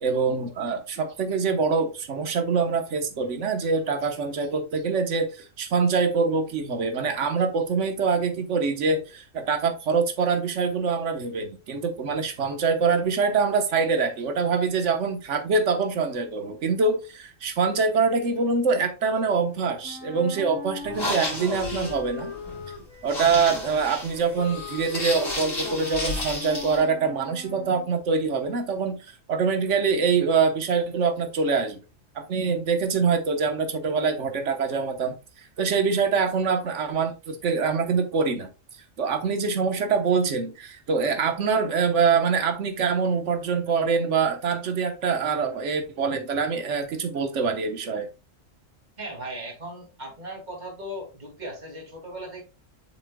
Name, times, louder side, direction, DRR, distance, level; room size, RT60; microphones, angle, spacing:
voice 1, 0.0-22.3 23.0-31.8 32.1-38.5 39.0-48.1, right 5 dB, 65° right, 1.4 m, -24 dB
Wind instrument woodwind instrument, 19.8-27.9, left 5 dB, 75° left, 1.9 m, -39 dB
sound 1, 20.8-26.8, left 2 dB, 45° left, 2.9 m, -33 dB
voice 2, 49.0-52.4, right 1 dB, 35° right, 2.4 m, -37 dB
7.6 x 5.7 x 2.2 m
omnidirectional pair, 1.3 m